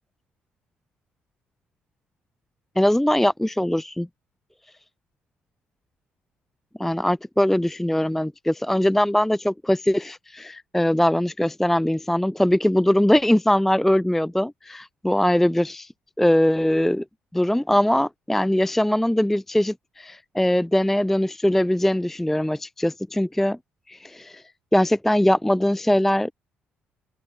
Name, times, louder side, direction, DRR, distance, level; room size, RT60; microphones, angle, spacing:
voice 1, 2.8-4.1 6.8-15.9 16.2-17.0 17.3-23.6 23.9-24.4 24.7-26.3, left 1 dB, 5° left, 0.3 m, -21 dB
open air
figure-of-eight pair, 45°, 6 cm